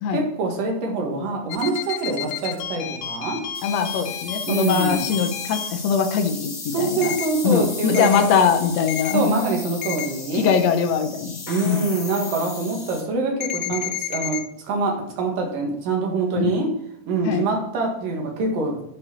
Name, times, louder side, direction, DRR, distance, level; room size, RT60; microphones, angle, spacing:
voice 1, 0.1-3.4 4.5-5.1 6.7-8.3 9.1-10.5 11.5-16.7 17.1-18.8, right 3 dB, 75° right, 1 dB, 3.4 m, -25 dB
sound 1, 1.5-5.7 7.0-7.3 7.9-8.2 8.9-9.1 9.8-10.1 13.4-14.4, left 11 dB, 85° left, 2.6 m, -30 dB
sound 2, 3.5-13.0, left 3 dB, 20° left, 2.8 m, -36 dB
voice 2, 3.6-7.2 7.4-9.3 10.3-11.9 16.4-16.6 17.3-17.4, left 6 dB, 70° left, 6 dB, 1.7 m, -22 dB
Clapping, 11.5-13.1, left 3 dB, 40° left, 2.3 m, -44 dB
10.0 x 4.7 x 6.2 m, 0.75 s
omnidirectional pair, 4.0 m